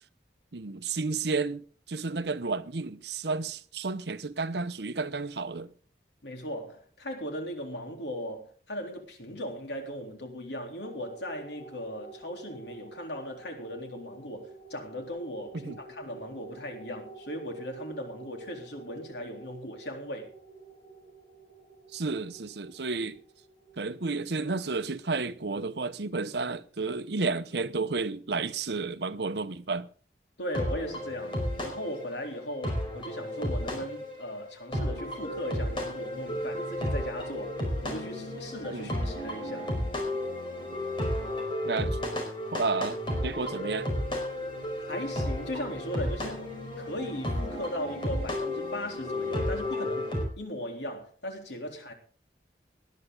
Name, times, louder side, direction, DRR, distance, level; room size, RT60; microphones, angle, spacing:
voice 1, 0.5-5.7 15.5-15.8 21.9-23.2 23.8-29.9 38.7-39.0 41.6-42.0 42.5-43.9, right 4 dB, 75° right, 0.9 m, -32 dB
voice 2, 6.2-20.3 30.4-39.7 44.8-46.5 46.8-50.1 50.4-51.9, equal, 85° left, 3.7 m, -38 dB
sound 1, 10.8-25.6, right 3 dB, 60° left, 5.8 m, -49 dB
sound 2, 30.5-50.2, left 1 dB, 30° left, 4.9 m, -33 dB
19.0 x 11.0 x 3.9 m
head